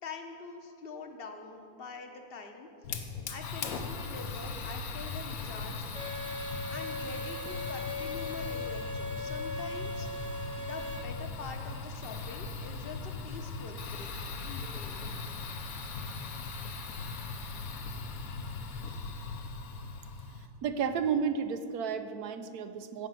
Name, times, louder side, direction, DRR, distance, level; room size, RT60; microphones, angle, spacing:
voice 1, 0.0-2.7 3.0-5.8 6.7-10.1 10.6-14.1 14.4-15.1, left 4 dB, 40° left, 4 dB, 1.1 m, -45 dB
Fire, 2.8-20.5, left 4 dB, 70° left, 1.3 m, -39 dB
Bowed string instrument, 6.0-11.0, left 2 dB, 25° right, 0.9 m, -38 dB
voice 2, 20.6-23.1, right 6 dB, 80° right, 10 dB, 1.2 m, -32 dB
16.0 x 5.3 x 7.6 m, 2.6 s
omnidirectional pair, 1.6 m